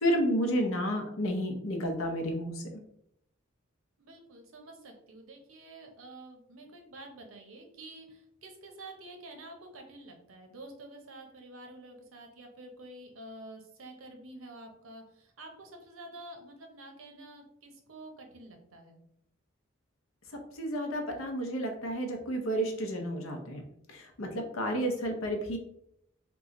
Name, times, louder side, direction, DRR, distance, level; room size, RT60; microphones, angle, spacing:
voice 1, 0.0-2.6 20.5-23.6 23.9-25.6, equal, 90° left, 3 dB, 0.7 m, -31 dB
voice 2, 4.0-19.0, right 2 dB, 90° right, 3 dB, 0.7 m, -49 dB
3.0 x 2.3 x 3.7 m, 0.73 s
head